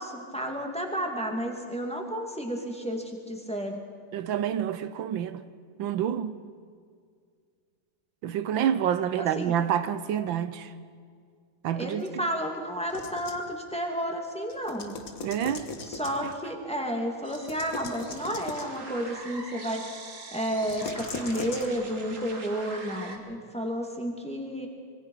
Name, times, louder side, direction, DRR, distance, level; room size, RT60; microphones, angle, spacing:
voice 1, 0.0-3.8 9.2-9.5 11.7-15.0 15.8-19.8 20.3-24.7, equal, 5° left, 2.4 m, -32 dB
voice 2, 4.1-5.4 5.8-6.4 8.2-10.7 11.6-12.1 15.2-15.7, right 9 dB, 80° right, 1.5 m, -28 dB
sound 1, 12.9-13.5 14.5-16.4 17.3-18.8 20.6-21.7, left 4 dB, 50° left, 1.8 m, -39 dB
sound 2, 17.2-23.2, right 3 dB, 40° right, 2.3 m, -43 dB
26.0 x 22.0 x 5.6 m
omnidirectional pair, 2.1 m